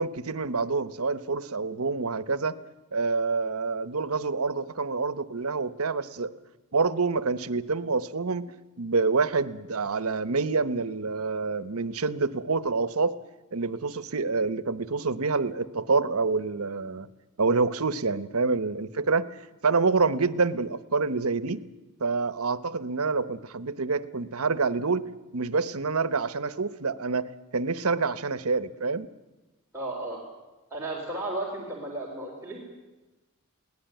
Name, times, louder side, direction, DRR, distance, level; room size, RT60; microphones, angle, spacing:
voice 1, 0.0-2.6 2.9-6.3 6.7-13.1 13.5-17.1 17.4-21.6 22.0-25.1 25.3-29.1, right 4 dB, 75° right, 14 dB, 1.0 m, -27 dB
voice 2, 29.7-30.2 30.7-32.6, right 2 dB, 10° right, -4 dB, 4.0 m, -34 dB
22.5 x 17.5 x 9.1 m, 1.1 s
head